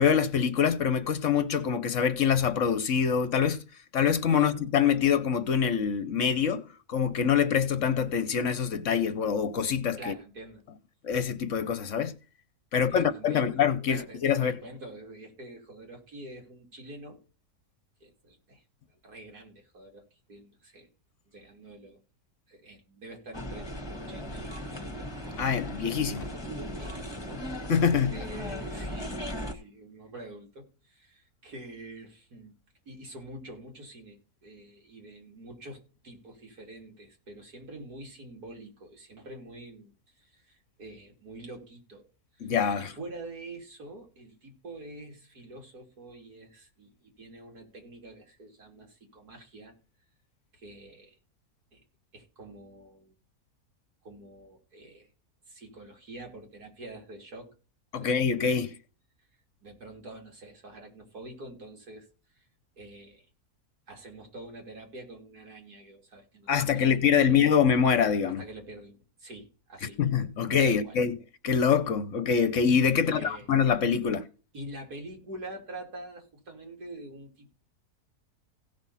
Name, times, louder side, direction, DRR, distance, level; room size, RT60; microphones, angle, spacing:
voice 1, 0.0-3.6 3.9-10.1 11.0-12.1 12.7-14.6 25.4-26.3 27.7-28.1 42.4-42.9 57.9-58.8 66.5-68.4 70.0-71.2 71.4-74.3, left 7 dB, 60° left, 1.1 m, -25 dB
voice 2, 10.0-10.6 12.7-17.2 18.0-18.6 18.9-20.9 21.3-22.0 22.5-25.1 26.8-27.4 28.1-32.5 32.9-42.1 42.4-49.7 50.5-51.2 51.7-51.8 52.1-53.1 54.0-55.1 55.5-57.5 57.9-58.1 59.6-62.1 62.4-62.5 62.8-63.3 63.9-67.5 68.3-70.0 70.6-71.0 72.9-73.5 74.5-77.6, right 1 dB, 80° right, 3.6 m, -46 dB
sound 1, 23.3-29.5, equal, 15° left, 1.5 m, -37 dB
17.0 x 6.0 x 4.2 m
omnidirectional pair, 1.6 m